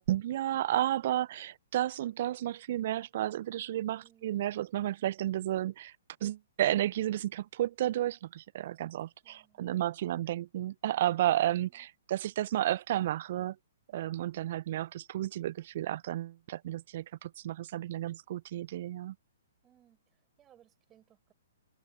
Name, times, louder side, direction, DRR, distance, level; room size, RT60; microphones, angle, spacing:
voice 1, 0.0-5.9 6.2-13.6 13.9-19.1, right 13 dB, 50° right, 0.4 m, -32 dB
voice 2, 9.2-9.7 10.3-10.4 11.6-11.9 19.6-21.3, right 11 dB, 20° right, 5.9 m, -64 dB
figure-of-eight pair, 120°, 0 cm